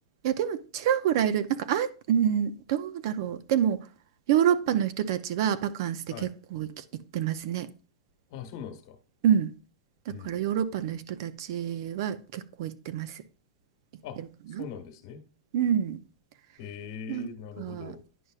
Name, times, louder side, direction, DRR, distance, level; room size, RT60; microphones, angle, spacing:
voice 1, 0.2-3.8 4.3-7.7 9.2-9.5 10.1-13.2 14.5-14.6 15.5-16.0 17.1-17.3 17.6-17.9, right 9 dB, 50° right, 0.5 m, -27 dB
voice 2, 8.3-9.0 10.1-10.4 14.0-14.2 14.6-15.2 16.6-18.0, left 7 dB, 50° left, 1.3 m, -41 dB
10.0 x 5.4 x 2.4 m
supercardioid pair, 160°, 3 cm